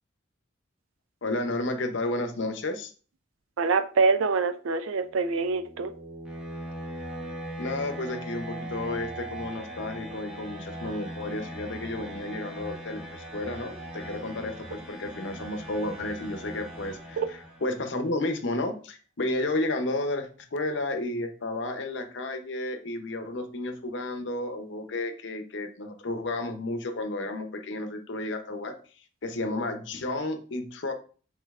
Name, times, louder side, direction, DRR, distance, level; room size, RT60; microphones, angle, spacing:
voice 1, 1.2-2.9 7.6-28.8 29.2-30.9, left 2 dB, 65° left, 0.7 m, -32 dB
voice 2, 3.6-5.9 17.2-17.3, right 4 dB, 90° right, 0.4 m, -25 dB
sound 1, 5.0-17.9, right 1 dB, 5° right, 0.8 m, -40 dB
5.2 x 3.8 x 2.4 m
head